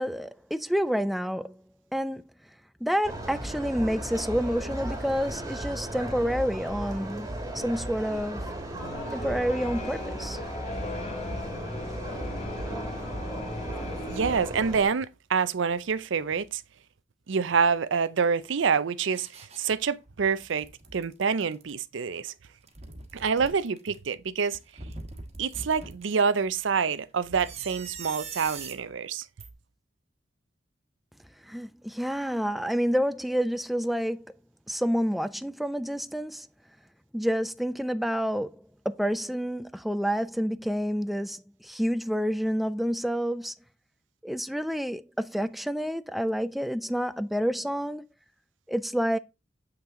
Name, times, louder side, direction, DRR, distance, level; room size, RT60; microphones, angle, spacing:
voice 1, 0.0-1.6 1.9-2.2 2.8-8.5 9.1-10.4 31.4-34.3 34.7-36.5 37.1-43.5 44.2-48.0 48.7-49.2, equal, ahead, 0.3 m, -29 dB
sound 1, 3.0-14.8, right 1 dB, 20° right, 1.6 m, -36 dB
sound 2, 8.8-14.5, left 2 dB, 35° left, 0.9 m, -38 dB
voice 2, 14.1-16.6 17.3-20.7 20.9-22.3 23.1-24.6 25.4-29.3, right 6 dB, 80° right, 0.5 m, -27 dB
sound 3, 19.1-19.6 20.1-21.7 22.5-24.0 24.5-26.2 27.3-28.8 29.4-29.5, right 3 dB, 35° right, 1.3 m, -42 dB
7.3 x 5.8 x 3.6 m
head